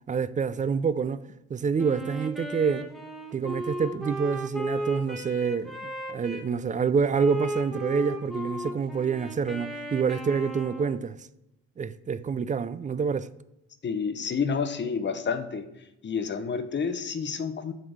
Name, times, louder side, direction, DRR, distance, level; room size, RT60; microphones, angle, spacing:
voice 1, 0.1-1.2 1.5-2.9 3.3-11.2 11.8-13.3, right 6 dB, 25° right, 0.4 m, -27 dB
Wind instrument woodwind instrument, 1.8-6.5 7.1-11.1, equal, ahead, 1.2 m, -35 dB
voice 2, 13.8-15.7 16.0-17.7, left 6 dB, 35° left, 0.8 m, -29 dB
7.9 x 3.8 x 6.3 m
cardioid pair, 90°, 30 cm